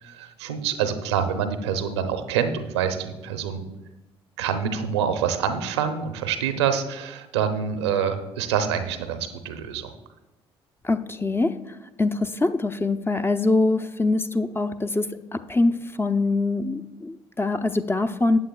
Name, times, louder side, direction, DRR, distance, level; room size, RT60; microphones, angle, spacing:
voice 1, 0.0-3.6 4.4-9.9, right 7 dB, 80° right, 8 dB, 0.7 m, -26 dB
voice 2, 10.8-11.5 12.0-18.4, left 2 dB, 15° left, 10 dB, 0.6 m, -24 dB
14.0 x 8.8 x 2.3 m, 1.0 s
hypercardioid pair, 50°, 14 cm